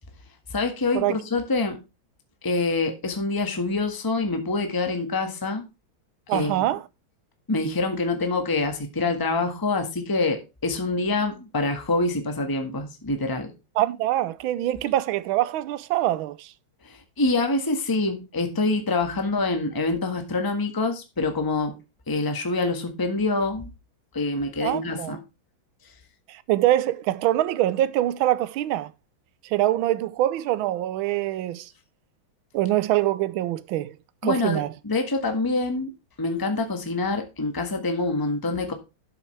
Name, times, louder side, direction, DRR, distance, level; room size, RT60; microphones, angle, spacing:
voice 1, 0.5-1.8 2.4-5.6 6.3-6.6 7.5-13.5 17.2-21.7 22.1-23.7 24.1-25.2 34.2-35.9 36.2-38.7, left 3 dB, 10° left, 1.3 m, -26 dB
voice 2, 6.3-6.8 13.8-16.5 24.6-25.2 26.3-28.9 29.4-31.7 32.5-33.9 34.2-34.7, right 14 dB, 85° right, 1.5 m, -24 dB
12.0 x 7.1 x 3.3 m
omnidirectional pair, 2.2 m